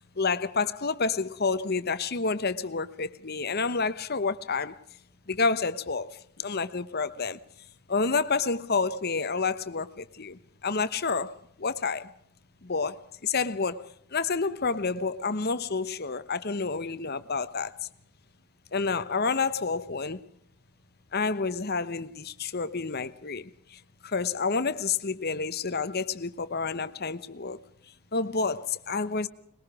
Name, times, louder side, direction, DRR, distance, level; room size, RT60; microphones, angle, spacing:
voice 1, 0.2-4.8 5.3-7.4 7.9-12.1 12.6-17.8 18.7-20.3 21.1-27.6 28.1-29.3, left 4 dB, 45° left, 1.1 m, -29 dB
25.5 x 21.0 x 4.9 m
head